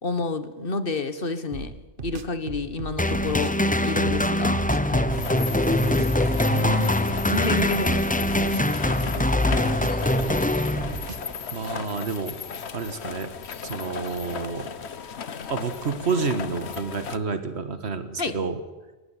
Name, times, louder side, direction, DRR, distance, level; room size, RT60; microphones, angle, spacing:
voice 1, 0.0-1.7 2.0-3.5 3.8-4.5 4.8-5.1 7.3-8.0 18.2-18.4, left 3 dB, 55° left, 11 dB, 1.6 m, -29 dB
sound 1, 1.5-3.7 4.1-6.2 6.6-8.9 9.2-11.4, right 4 dB, 55° right, 1.3 m, -37 dB
sound 2, 3.0-11.3, left 1 dB, 10° left, 0.7 m, -23 dB
sound 3, 5.1-17.2, left 6 dB, 80° left, 1.3 m, -35 dB
voice 2, 6.3-6.9 11.5-12.3 12.7-13.3 13.6-14.7 15.5-18.6, right 4 dB, 85° right, 10 dB, 1.8 m, -29 dB
18.5 x 16.0 x 9.2 m, 1.2 s
omnidirectional pair, 1.1 m